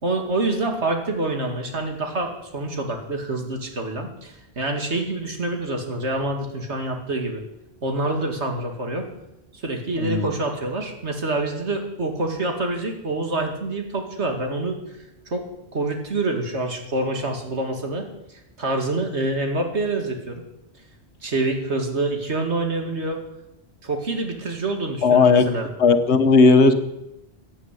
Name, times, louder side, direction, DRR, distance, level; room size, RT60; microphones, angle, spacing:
voice 1, 0.0-7.4 7.8-9.1 9.5-15.0 15.3-18.1 18.3-20.4 21.2-23.2 23.8-25.7, right 2 dB, 90° right, 3 dB, 2.7 m, -26 dB
voice 2, 25.0-25.5 25.8-26.7, left 4 dB, 80° left, 8 dB, 1.6 m, -15 dB
16.0 x 10.5 x 8.4 m, 0.89 s
omnidirectional pair, 1.1 m